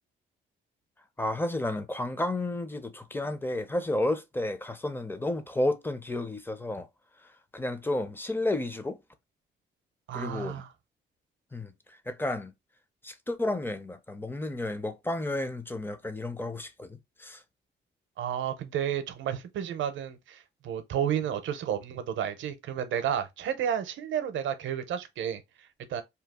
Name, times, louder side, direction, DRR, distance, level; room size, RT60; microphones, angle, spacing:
voice 1, 1.2-6.9 7.5-9.0 10.1-10.6 11.5-11.7 12.1-12.5 13.0-17.4, left 1 dB, 10° left, 0.5 m, -31 dB
voice 2, 10.1-10.7 18.2-26.0, right 9 dB, 80° right, 0.6 m, -32 dB
2.8 x 2.3 x 3.5 m
cardioid pair, 95°, 20 cm